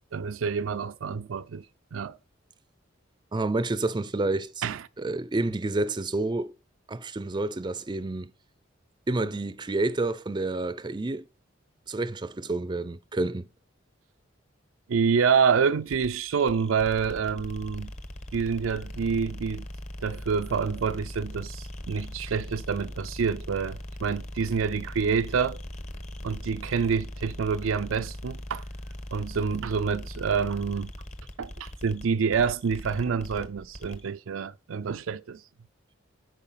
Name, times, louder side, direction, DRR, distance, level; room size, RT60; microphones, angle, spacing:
voice 1, 0.1-1.6 1.9-2.2 4.6-4.8 14.9-17.9 18.3-19.7 20.0-25.6 26.2-28.6 29.1-30.9 31.4-35.4, right 6 dB, 85° right, 0.4 m, -27 dB
voice 2, 3.3-4.6 5.0-6.5 6.9-8.3 9.1-11.3 11.9-13.5, right 2 dB, 20° right, 0.5 m, -29 dB
sound 1, 15.9-34.1, left 1 dB, 35° left, 1.1 m, -40 dB
8.7 x 4.8 x 5.7 m
head